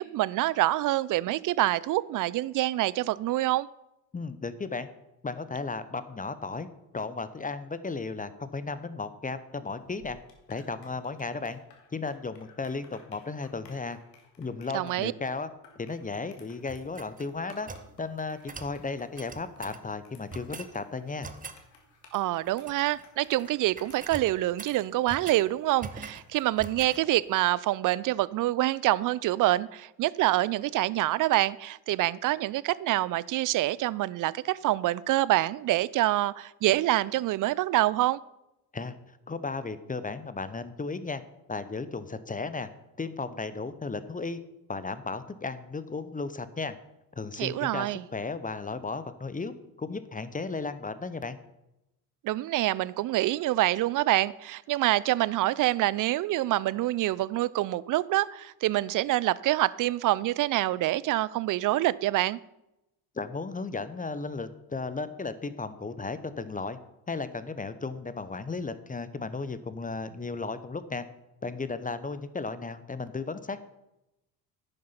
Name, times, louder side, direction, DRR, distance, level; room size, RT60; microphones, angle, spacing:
voice 1, 0.0-3.7 14.7-15.1 22.1-38.2 47.4-48.0 52.2-62.4, right 16 dB, 40° right, 21 dB, 0.5 m, -26 dB
voice 2, 4.1-4.9 5.2-6.7 6.9-10.2 10.5-11.6 11.9-14.0 14.4-15.5 15.8-17.7 18.0-21.3 38.7-39.0 39.3-41.2 41.5-42.7 43.0-44.4 44.7-46.7 47.2-49.5 49.8-51.4 63.1-66.8 67.1-71.0 71.4-73.6, left 4 dB, 15° left, 13 dB, 0.8 m, -35 dB
sound 1, 9.7-27.5, left 5 dB, 85° left, 1.8 m, -58 dB
sound 2, 16.7-17.9 18.5-18.8 19.2-19.8 20.3-20.7 21.2-21.6 22.4-23.0 23.3-23.5 23.8-25.4 25.8-26.3 26.6-27.0, right 4 dB, 15° right, 0.8 m, -43 dB
10.5 x 6.8 x 5.6 m, 0.90 s
hypercardioid pair, 60°, 49 cm